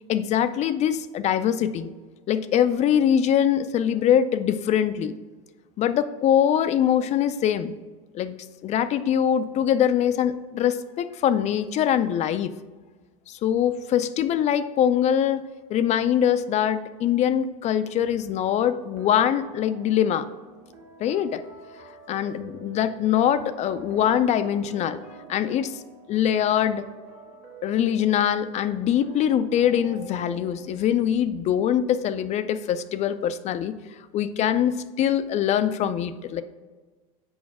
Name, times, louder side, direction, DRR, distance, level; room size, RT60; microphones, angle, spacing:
voice 1, 0.1-1.9 2.3-5.2 5.8-7.7 8.1-8.4 8.6-12.5 13.4-15.4 15.7-20.3 21.0-21.4 22.1-25.0 25.3-25.7 26.1-26.8 27.6-33.7 34.1-36.4, left 9 dB, 35° left, 12 dB, 0.4 m, -23 dB
sound 1, 19.0-31.4, right 3 dB, 65° right, 1.8 m, -46 dB
6.3 x 5.1 x 4.8 m, 1.3 s
hypercardioid pair, 100°, 19 cm